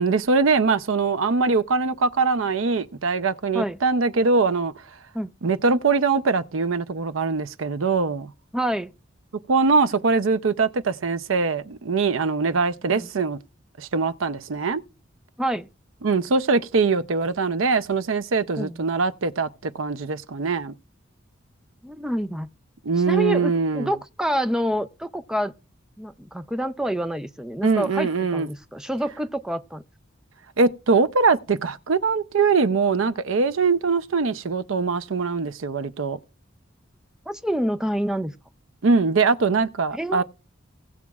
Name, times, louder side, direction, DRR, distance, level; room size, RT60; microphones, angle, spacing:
voice 1, 0.0-4.7 5.4-8.3 9.5-13.4 13.8-14.8 16.0-20.7 22.8-23.9 27.6-28.5 30.6-36.2 38.8-40.2, right 4 dB, 80° right, 0.6 m, -22 dB
voice 2, 8.5-8.9 12.9-13.1 15.4-15.7 18.6-18.7 21.8-22.5 23.1-25.5 26.0-29.8 37.3-38.3 39.9-40.2, equal, 5° right, 0.4 m, -27 dB
18.0 x 7.2 x 2.4 m
head